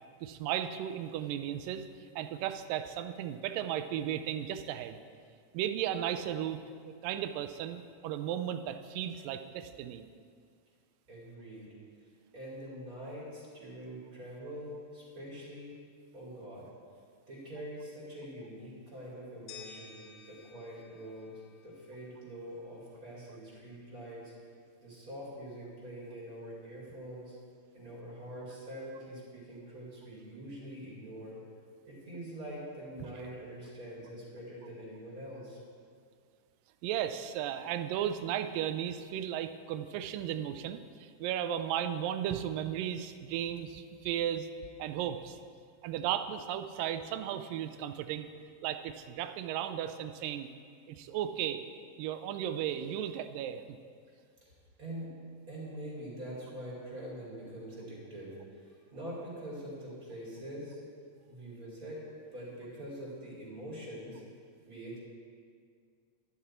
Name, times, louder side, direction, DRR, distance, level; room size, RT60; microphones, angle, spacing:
voice 1, 0.2-1.8 2.2-5.0 5.5-6.6 6.9-10.1 33.0-33.1 36.8-44.5 44.8-45.4 45.8-48.3 48.6-50.5 50.9-51.6 52.0-53.8, right 10 dB, 85° right, 10 dB, 2.2 m, -35 dB
voice 2, 11.1-11.7 12.3-15.8 16.1-16.7 17.3-21.3 21.6-24.3 24.8-27.3 27.7-31.4 31.8-35.6 54.4-54.5 54.8-55.1 55.5-58.3 58.6-60.8 61.3-62.0 62.3-64.2 64.7-65.0, right 1 dB, 25° right, -6 dB, 3.1 m, -44 dB
sound 1, 19.5-22.4, left 5 dB, 80° left, 1.4 m, -53 dB
11.5 x 10.5 x 4.4 m, 2.1 s
omnidirectional pair, 3.9 m